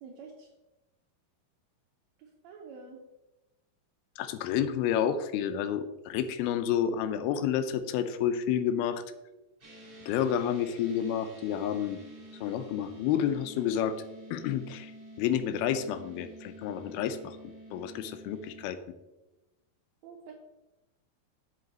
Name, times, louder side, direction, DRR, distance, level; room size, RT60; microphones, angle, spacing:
voice 1, 0.0-0.5 2.2-3.0 20.0-20.3, right 5 dB, 85° right, 1 dB, 1.6 m, -47 dB
voice 2, 4.2-9.0 10.1-12.0 12.4-14.0 14.3-14.9 15.2-18.8, left 9 dB, 85° left, 11 dB, 2.6 m, -30 dB
sound 1, 9.6-18.7, right 1 dB, 15° right, 2.5 m, -49 dB
7.8 x 7.7 x 4.0 m, 1.0 s
omnidirectional pair, 4.3 m